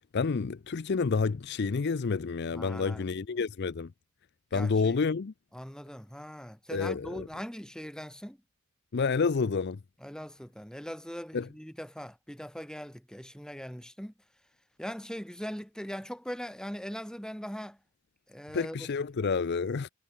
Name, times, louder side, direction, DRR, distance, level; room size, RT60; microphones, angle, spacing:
voice 1, 0.1-3.9 4.5-5.3 6.7-7.3 8.9-9.8 11.3-11.5 18.5-19.9, left 4 dB, 50° left, 0.5 m, -29 dB
voice 2, 2.5-3.1 4.5-5.0 5.5-8.4 10.0-14.1 14.8-17.8 18.3-18.9, equal, 5° left, 3.2 m, -41 dB
head